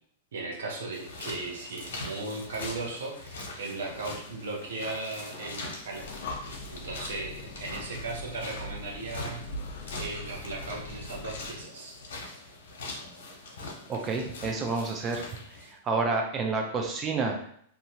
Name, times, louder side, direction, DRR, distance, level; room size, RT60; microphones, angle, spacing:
voice 1, 0.3-6.1 6.7-9.4 10.0-12.0, right 3 dB, 85° right, 0 dB, 0.8 m, -37 dB
sound 1, 0.9-15.7, left 2 dB, 80° left, 0.9 m, -42 dB
Breathing, 5.9-11.6, left 2 dB, 60° left, 0.4 m, -41 dB
voice 2, 13.9-17.4, right 4 dB, 20° right, 1 dB, 0.3 m, -30 dB
2.7 x 2.4 x 2.8 m, 0.65 s
supercardioid pair, 165°, 0 cm